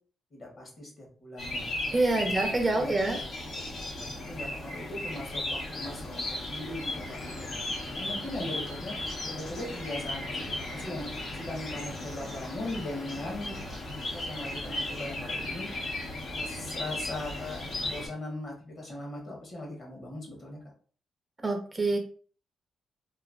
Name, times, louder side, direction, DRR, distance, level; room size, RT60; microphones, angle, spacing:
voice 1, 0.3-1.7 2.1-2.3 2.7-2.9 3.9-7.5 7.9-8.9 9.2-13.7 14.1-15.7 16.2-20.6, left 1 dB, 45° left, -1 dB, 1.4 m, -39 dB
sound 1, 1.4-18.1, left 1 dB, 60° left, 1.0 m, -36 dB
voice 2, 1.9-3.2 21.4-22.0, right 2 dB, 20° right, 3 dB, 0.5 m, -26 dB
3.0 x 2.4 x 2.5 m, 0.43 s
cardioid pair, 105°, 0 cm